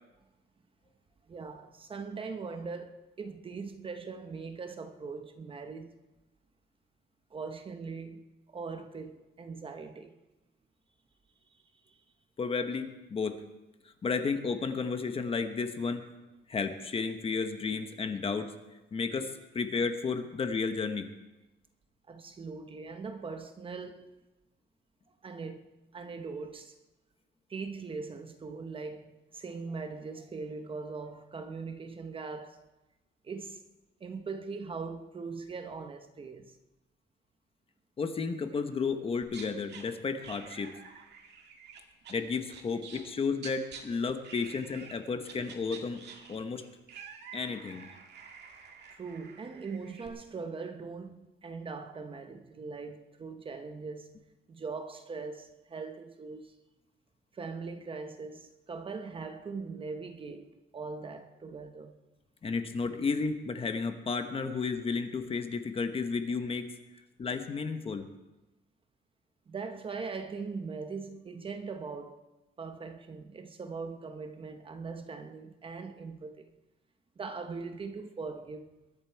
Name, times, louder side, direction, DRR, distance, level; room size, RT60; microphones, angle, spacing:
voice 1, 1.3-6.0 7.3-10.1 11.5-12.0 22.1-24.1 25.2-25.7 25.9-26.8 27.5-32.6 33.2-33.6 34.0-36.6 40.5-40.6 43.9-44.0 48.9-54.2 54.5-56.6 57.3-62.0 64.5-64.6 69.5-72.2 72.6-76.5 77.2-78.7, right 4 dB, 25° right, 0.8 m, -41 dB
voice 2, 12.4-13.4 14.0-16.1 16.5-18.6 18.9-19.3 19.5-21.1 38.0-40.7 42.1-46.6 47.3-47.9 62.4-66.7 67.2-68.1, left 4 dB, 30° left, 1.0 m, -32 dB
sound 1, 39.2-39.8 40.2-43.1 43.4-43.8 44.2-45.0 45.2-50.1, right 6 dB, 60° right, 2.0 m, -49 dB
21.5 x 10.5 x 4.6 m
cardioid pair, 170°, 20 cm